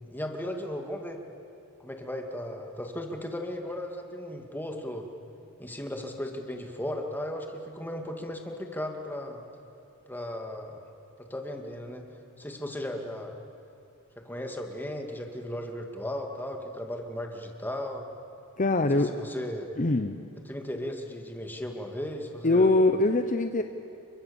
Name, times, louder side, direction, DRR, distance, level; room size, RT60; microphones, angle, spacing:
voice 1, 0.1-1.2 1.8-5.1 5.6-9.4 10.1-10.8 11.2-12.0 12.4-13.3 14.2-18.0 18.9-19.7 20.5-22.7, left 1 dB, 10° left, 3 dB, 2.3 m, -36 dB
voice 2, 18.6-19.1 19.8-20.2 22.4-23.6, left 2 dB, 35° left, 7 dB, 0.8 m, -23 dB
29.5 x 24.0 x 7.1 m, 2.8 s
head